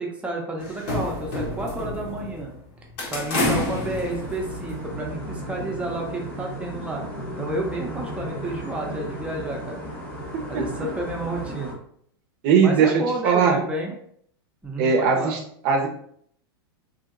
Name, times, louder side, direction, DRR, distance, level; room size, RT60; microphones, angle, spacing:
voice 1, 0.0-2.5 3.1-7.0 7.4-9.8 10.5-11.8 12.6-13.9 14.6-15.3, right 2 dB, 10° right, -1 dB, 0.6 m, -30 dB
sound 1, 0.6-2.5 3.0-4.9, left 2 dB, 55° left, 1.1 m, -28 dB
sound 2, 3.8-11.7, equal, 15° left, 0.9 m, -35 dB
voice 2, 12.4-13.6 14.8-15.9, right 6 dB, 50° right, 3 dB, 0.6 m, -19 dB
2.7 x 2.7 x 2.5 m, 0.65 s
hypercardioid pair, 125°, 13 cm